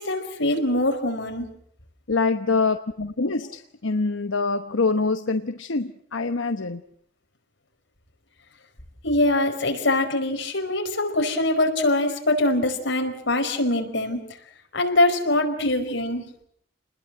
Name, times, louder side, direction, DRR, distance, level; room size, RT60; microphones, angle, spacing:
voice 1, 0.0-1.5 9.0-14.2 14.7-16.3, left 1 dB, 65° left, 4 dB, 5.0 m, -23 dB
voice 2, 2.1-6.8, left 3 dB, 85° left, 8 dB, 1.0 m, -25 dB
29.0 x 20.5 x 7.7 m, 0.67 s
head